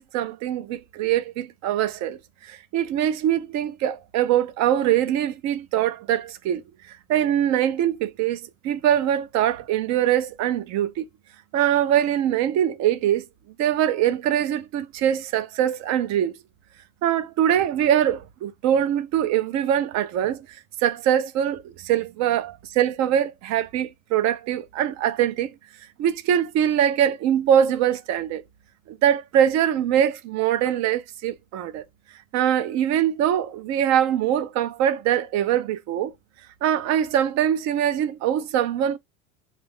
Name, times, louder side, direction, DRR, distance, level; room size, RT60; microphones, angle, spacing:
voice 1, 0.0-6.6 6.9-11.1 11.5-13.2 13.6-16.3 17.0-20.5 20.8-25.5 26.0-28.4 28.9-31.8 32.3-36.1 36.6-39.0, right 10 dB, 40° right, 0.5 m, -23 dB
3.0 x 2.5 x 3.5 m
hypercardioid pair, 95°, 41 cm